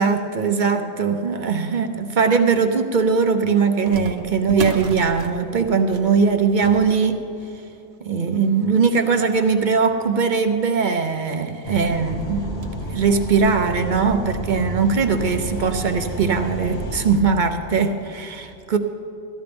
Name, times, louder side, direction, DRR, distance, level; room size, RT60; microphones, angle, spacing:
voice 1, 0.0-7.2 8.1-18.8, right 5 dB, 55° right, 6 dB, 0.8 m, -20 dB
sound 1, 2.4-2.5 3.9-10.8 11.4-11.5 11.7-11.8 12.2-12.9 13.4-13.5 14.4-14.5 14.8-15.0 16.3-16.6 17.0-17.1 17.7-17.9, right 4 dB, 80° right, 1.0 m, -38 dB
sound 2, 11.6-17.2, equal, 40° left, 1.1 m, -31 dB
18.0 x 13.5 x 3.4 m, 2.8 s
omnidirectional pair, 1.1 m